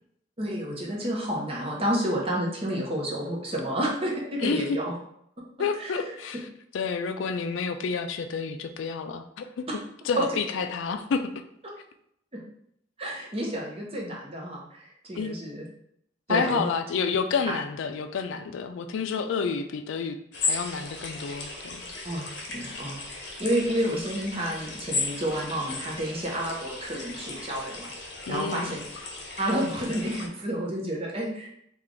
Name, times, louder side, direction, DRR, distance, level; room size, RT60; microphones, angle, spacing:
voice 1, 0.4-4.8 5.8-5.9 12.3-12.4 13.0-15.6 16.3-16.6 22.0-22.2 22.5-27.9 28.3-28.8 29.4-31.5, right 1 dB, 30° right, -2 dB, 0.9 m, -30 dB
voice 2, 4.4-4.8 5.6-6.5 6.7-9.7 10.0-11.4 15.2-15.4 16.3-20.2 20.4-21.8 28.3-28.8, left 5 dB, 80° left, 8 dB, 0.3 m, -29 dB
sound 1, 20.3-30.3, left 3 dB, 60° left, 0.8 m, -36 dB
3.4 x 2.4 x 3.7 m, 0.72 s
head